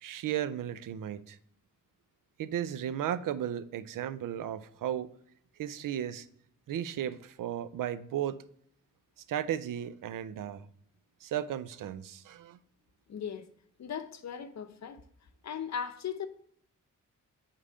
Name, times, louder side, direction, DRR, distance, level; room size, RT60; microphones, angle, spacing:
voice 1, 0.0-1.4 2.4-5.1 5.6-6.3 6.7-8.4 9.3-10.7 11.2-12.6, right 10 dB, 80° right, 0.5 m, -35 dB
voice 2, 13.1-13.5 13.8-15.0 15.4-16.3, left 7 dB, 60° left, 0.7 m, -37 dB
5.0 x 3.7 x 5.4 m
cardioid pair, 75°, 32 cm